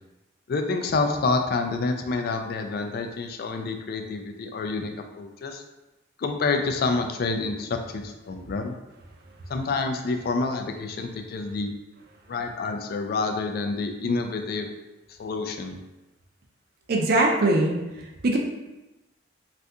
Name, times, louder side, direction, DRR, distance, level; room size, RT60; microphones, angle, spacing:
voice 1, 0.5-5.6 6.2-8.7 9.5-11.7 12.3-14.7 15.1-15.8, left 3 dB, 55° left, 5 dB, 0.3 m, -28 dB
voice 2, 16.9-18.4, right 2 dB, 55° right, 1 dB, 0.5 m, -22 dB
2.6 x 2.5 x 3.4 m, 1.0 s
head